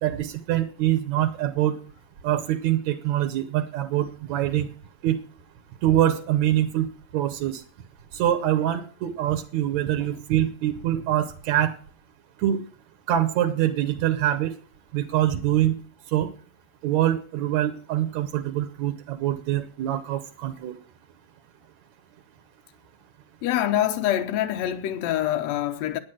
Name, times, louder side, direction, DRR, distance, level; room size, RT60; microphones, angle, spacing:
voice 1, 0.0-1.8 2.2-4.7 5.0-5.2 5.8-7.6 8.1-11.7 12.4-12.6 13.1-14.5 14.9-15.8 16.1-16.3 16.8-20.8, right 12 dB, 70° right, 1.9 m, -24 dB
voice 2, 23.4-26.0, left 12 dB, 85° left, 1.5 m, -25 dB
10.5 x 9.5 x 7.5 m
omnidirectional pair, 4.2 m